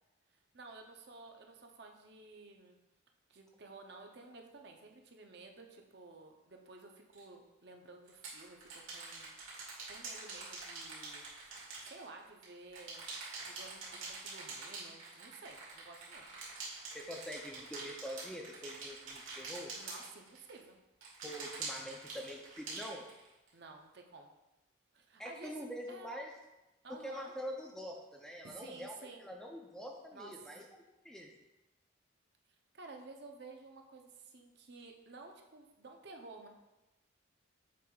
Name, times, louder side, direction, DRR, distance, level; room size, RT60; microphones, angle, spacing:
voice 1, 0.5-2.8 3.3-11.2 11.8-13.1 13.4-16.2 19.7-20.8 23.5-24.3 24.9-26.1 26.8-27.3 28.4-29.2 30.1-30.3 32.7-36.5, right 3 dB, 55° right, 2 dB, 0.7 m, -53 dB
sound 1, 7.1-7.2 8.1-12.5 12.7-20.6 21.0-23.5, right 3 dB, 90° right, 2.2 m, -45 dB
voice 2, 16.9-19.7 21.2-23.0 25.2-26.3 27.0-30.6 31.0-31.3, equal, 5° left, 0 dB, 0.5 m, -45 dB
7.4 x 5.4 x 2.4 m, 1.0 s
head